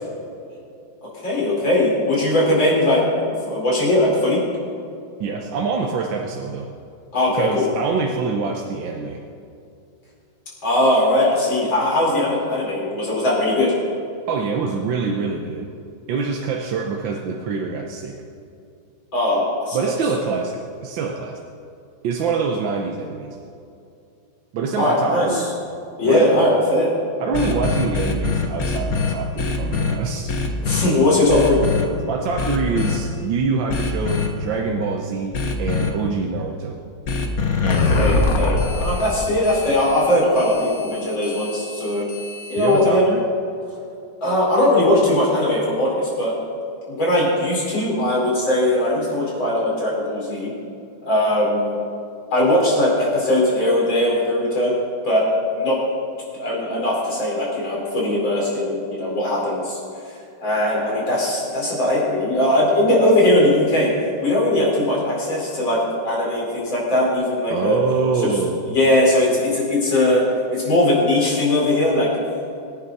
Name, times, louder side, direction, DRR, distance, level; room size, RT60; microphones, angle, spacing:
voice 1, 1.2-4.4 7.1-7.7 10.6-13.7 19.1-19.9 24.7-25.5 26.0-26.9 30.6-31.6 37.6-42.1 42.5-43.0 44.2-46.4 46.9-50.5 51.0-51.8 52.3-54.7 55.0-55.8 56.4-59.8 60.4-63.9 64.2-67.8 68.2-68.3 68.7-70.2 70.5-72.1, left 1 dB, 75° left, -5 dB, 5.3 m, -19 dB
voice 2, 5.2-6.7 7.3-9.2 14.3-15.7 16.1-18.2 19.7-21.4 22.0-23.4 24.5-25.5 26.0-26.3 27.2-30.3 32.1-36.8 42.6-43.2 67.5-68.7, right 5 dB, 75° right, 1 dB, 1.6 m, -25 dB
sound 1, 27.3-29.9 30.3-30.9 31.3-31.8 32.4-33.0 33.7-34.3 35.3-35.9 37.1-42.9, left 4 dB, 50° left, 1.6 m, -23 dB
24.0 x 10.5 x 4.1 m, 2.6 s
omnidirectional pair, 2.1 m